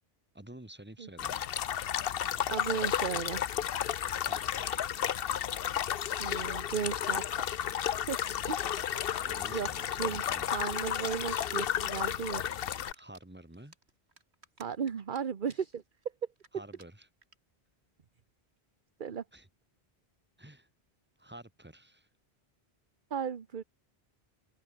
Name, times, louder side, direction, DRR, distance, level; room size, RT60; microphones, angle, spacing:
voice 1, 0.3-1.5 4.2-4.8 9.2-10.5 12.9-13.8 16.5-17.1 19.3-19.5 20.4-20.7 21.2-22.1, right 1 dB, 10° right, 2.2 m, -50 dB
sound 1, 1.2-12.9, left 10 dB, 65° left, 0.9 m, -32 dB
voice 2, 2.5-3.5 6.2-7.7 8.1-8.2 8.5-8.9 9.5-10.2 10.5-12.6 14.6-15.8 19.0-19.2 23.1-23.6, right 7 dB, 50° right, 1.1 m, -35 dB
sound 2, 11.6-12.1 12.4-13.2 13.5-15.2 15.4-15.7 16.0-16.1 16.4-16.5 16.7-16.8 17.2-17.3, right 3 dB, 85° right, 3.0 m, -54 dB
omnidirectional pair, 1.1 m